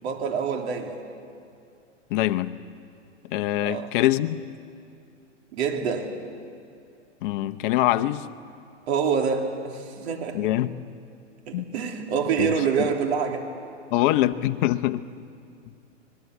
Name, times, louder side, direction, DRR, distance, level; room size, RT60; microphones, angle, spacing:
voice 1, 0.0-1.0 3.6-3.9 5.5-6.1 8.9-10.5 11.5-13.4, right 6 dB, 60° right, 2 dB, 3.3 m, -26 dB
voice 2, 2.1-2.5 3.3-4.4 7.2-8.2 10.3-10.7 11.5-11.7 12.4-12.5 12.8-12.9 13.9-15.1, left 15 dB, 45° left, 10 dB, 1.0 m, -24 dB
27.0 x 21.0 x 8.2 m, 2.4 s
hypercardioid pair, 130°, 37 cm